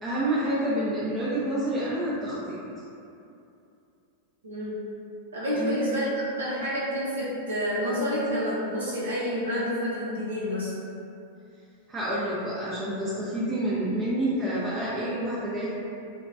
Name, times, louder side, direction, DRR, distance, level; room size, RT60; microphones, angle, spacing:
voice 1, 0.0-2.6 5.5-5.8 11.9-15.7, right 1 dB, 20° right, -9 dB, 0.5 m, -28 dB
voice 2, 4.4-4.8 5.3-6.1 6.4-10.7, equal, 80° right, -9 dB, 0.7 m, -28 dB
2.8 x 2.2 x 2.6 m, 2.7 s
figure-of-eight pair, 95°, 0 cm